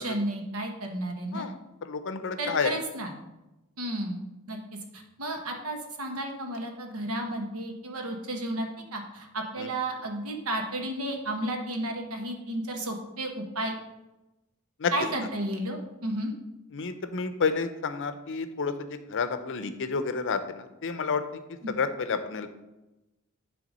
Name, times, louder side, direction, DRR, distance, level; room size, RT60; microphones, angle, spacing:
voice 1, 0.0-1.5 2.4-3.1 3.8-4.2 4.5-4.6 4.9-13.8 14.9-16.3 21.6-21.7, right 1 dB, 70° right, 3 dB, 1.3 m, -32 dB
voice 2, 1.8-2.7 9.6-9.7 14.8-14.9 16.7-21.2 21.7-22.5, left 5 dB, 60° left, 10 dB, 0.6 m, -30 dB
10.5 x 3.5 x 5.3 m, 1.0 s
head